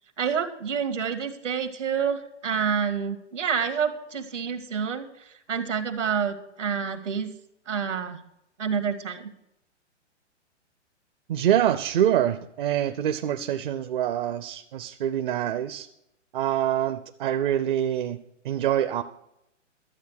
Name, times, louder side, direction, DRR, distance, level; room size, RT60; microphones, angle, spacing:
voice 1, 0.2-7.3 7.7-8.2 8.6-9.3, right 6 dB, 75° right, 7 dB, 1.9 m, -28 dB
voice 2, 11.3-15.9 16.3-18.2 18.4-19.0, right 11 dB, 45° right, 10 dB, 0.7 m, -25 dB
12.0 x 8.3 x 6.5 m, 0.82 s
hypercardioid pair, 125°, 37 cm